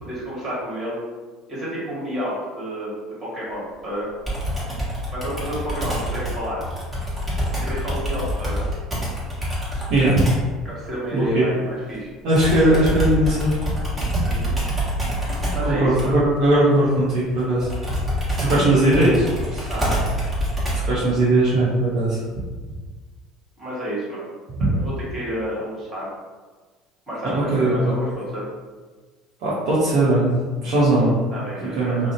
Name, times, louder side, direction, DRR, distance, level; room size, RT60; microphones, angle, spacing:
voice 1, 0.0-1.0 1.5-4.1 5.1-6.6 7.6-8.7 10.6-12.1 14.2-14.5 15.5-16.2 19.7-20.0 23.6-24.3 24.7-26.1 27.1-28.5 31.3-32.1, equal, 35° right, -7 dB, 1.4 m, -30 dB
Computer keyboard, 4.3-10.5 12.3-21.0, equal, 20° right, 1.1 m, -26 dB
voice 2, 9.9-10.2 11.1-11.4 12.2-13.5 15.7-17.7 18.4-19.7 20.8-22.2 24.6-24.7 27.2-27.9 29.4-30.3 30.6-31.1 31.8-32.1, right 1 dB, 60° right, -9 dB, 0.7 m, -19 dB
2.4 x 2.0 x 3.0 m, 1.4 s
hypercardioid pair, 65°, 0 cm